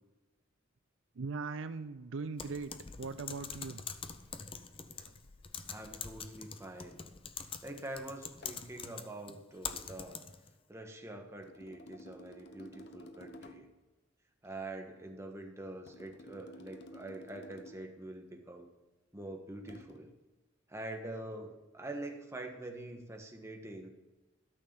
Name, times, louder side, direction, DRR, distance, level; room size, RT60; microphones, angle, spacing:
voice 1, 1.2-2.7 3.0-3.8, right 4 dB, 70° right, 11 dB, 0.5 m, -39 dB
Typing, 2.4-10.5, left 6 dB, 30° left, 0.7 m, -45 dB
voice 2, 5.7-7.0 7.6-10.2 10.7-13.7 14.4-18.7 19.1-20.1 20.7-23.9, right 1 dB, 15° right, 2 dB, 1.6 m, -45 dB
sound 1, 8.4-8.7 9.7-9.9 11.4-13.8 15.9-17.9 19.7-20.0, equal, 60° left, 1.1 m, -53 dB
13.0 x 6.6 x 7.0 m, 1.1 s
head